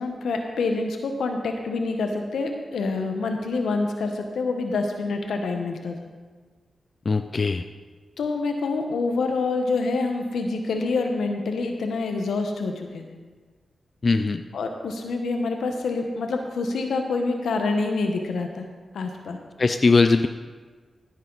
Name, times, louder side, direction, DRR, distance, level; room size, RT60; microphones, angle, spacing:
voice 1, 0.0-6.0 8.2-13.0 14.5-18.7 18.9-19.4, left 3 dB, 90° left, 4 dB, 1.3 m, -26 dB
voice 2, 7.1-7.6 14.0-14.4 19.6-20.3, left 4 dB, 50° left, 8 dB, 0.5 m, -20 dB
14.0 x 9.3 x 4.1 m, 1.4 s
cardioid pair, 60°, 0 cm